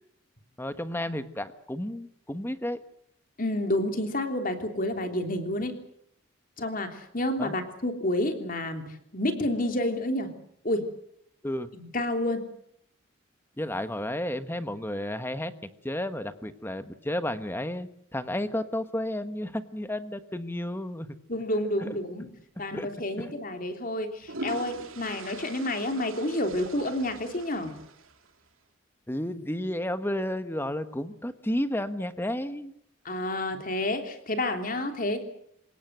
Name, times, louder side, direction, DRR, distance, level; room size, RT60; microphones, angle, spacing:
voice 1, 0.6-2.8 7.4-7.5 11.4-11.7 13.6-15.5 15.8-21.1 21.8-21.9 22.7-22.9 23.2-23.3 29.1-32.7 33.5-33.6, left 1 dB, 10° left, 11 dB, 1.2 m, -32 dB
voice 2, 3.4-5.7 6.6-8.8 9.1-10.3 10.6-10.9 11.7-12.4 21.3-22.3 22.6-27.7 33.0-35.2, left 1 dB, 40° left, 6 dB, 3.2 m, -29 dB
sound 1, 22.5-22.7 23.9-28.5, right 3 dB, 80° right, 2.6 m, -43 dB
27.5 x 18.0 x 7.9 m, 0.72 s
head